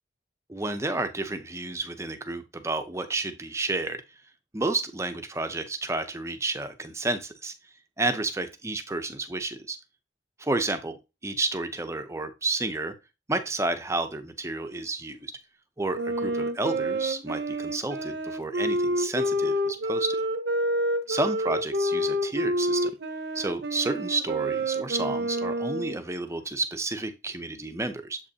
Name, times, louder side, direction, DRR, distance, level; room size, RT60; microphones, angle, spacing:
voice 1, 0.5-4.0 4.5-7.5 8.0-9.8 10.4-12.9 13.3-15.3 15.8-20.2 21.1-22.9 23.3-28.2, right 2 dB, 15° right, 8 dB, 0.6 m, -31 dB
Wind instrument woodwind instrument, 15.9-26.0, right 1 dB, 60° right, 0.7 m, -28 dB
7.5 x 5.3 x 2.8 m, 0.26 s
head